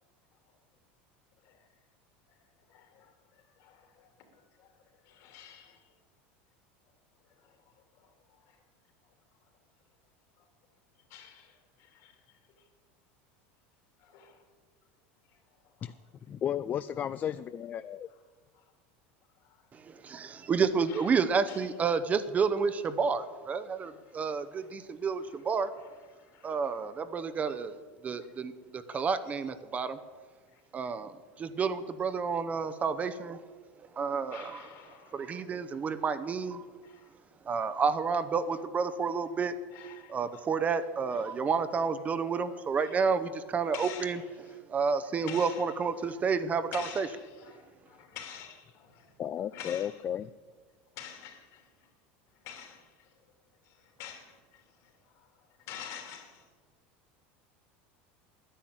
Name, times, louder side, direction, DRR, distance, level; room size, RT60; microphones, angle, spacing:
voice 1, 1.4-1.7 2.3-4.7 5.0-6.0 7.2-8.6 9.0-9.1 9.4-9.5 10.4-10.5 10.9-12.7 14.0-14.5 15.8-15.9 17.3-17.4 18.1-18.2 18.5-18.7 19.3-19.7 20.9-21.8 23.8-24.2 24.5-24.9 25.2-27.1 27.4-27.6 28.1-28.3 28.9-29.5 30.4-31.0 31.3-31.4 32.0-32.1 34.3-35.6 36.8-37.2 37.6-37.9 39.7-40.4 40.9-41.4 41.9-43.0 43.7-46.3 46.5-50.0 50.8-51.9 52.3-56.5, left 9 dB, 60° left, 3.0 m, -51 dB
voice 2, 16.3-18.1 49.2-50.3, left 9 dB, 30° left, 0.3 m, -33 dB
voice 3, 19.7-25.7 26.4-27.7 28.0-30.0 30.7-33.4 34.0-34.4 35.1-36.6 37.5-39.5 40.1-44.2 44.7-46.7 47.0-47.1, right 5 dB, 25° right, 0.7 m, -30 dB
10.5 x 10.0 x 8.8 m
supercardioid pair, 130°, 6 cm